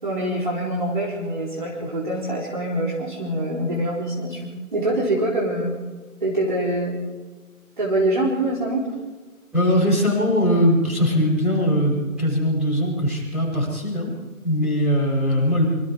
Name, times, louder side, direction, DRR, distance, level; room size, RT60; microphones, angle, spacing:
voice 1, 0.0-5.8 6.2-7.0 7.8-8.9, right 1 dB, 35° right, -4 dB, 4.1 m, -24 dB
voice 2, 9.5-14.1 14.4-15.6, equal, ahead, -14 dB, 5.8 m, -20 dB
28.0 x 27.0 x 3.7 m, 1.3 s
figure-of-eight pair, 175°, 44 cm